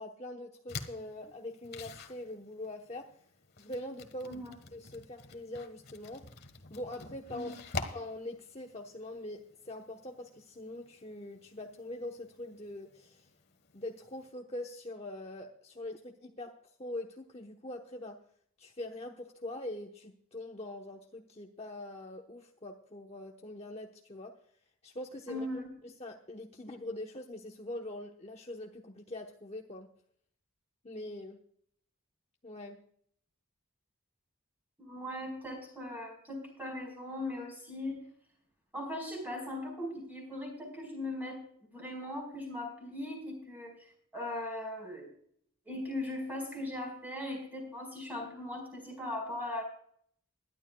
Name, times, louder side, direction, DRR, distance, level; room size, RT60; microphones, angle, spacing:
voice 1, 0.0-3.1 3.6-4.4 4.7-6.3 6.7-7.6 7.9-13.3 13.7-18.2 18.6-24.3 24.8-25.5 26.0-29.9 30.8-31.4 32.4-32.8, left 1 dB, 30° left, 1 dB, 1.0 m, -43 dB
sound 1, 0.7-14.3, left 3 dB, 45° left, 1.4 m, -48 dB
voice 2, 25.3-25.7 34.8-38.1 38.7-41.4 41.7-43.8 44.1-45.1 45.6-49.6, left 1 dB, 10° right, 1 dB, 4.6 m, -39 dB
21.5 x 11.5 x 2.3 m, 0.62 s
head